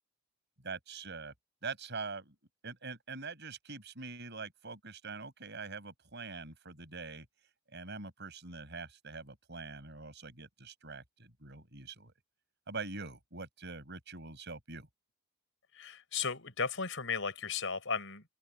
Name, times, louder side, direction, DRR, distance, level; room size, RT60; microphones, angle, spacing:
voice 1, 0.6-1.3 1.6-2.3 2.6-7.3 7.7-12.1 12.7-14.9, right 4 dB, 60° right, 6.4 m, -44 dB
voice 2, 15.7-18.2, left 5 dB, 70° left, 5.9 m, -35 dB
open air
head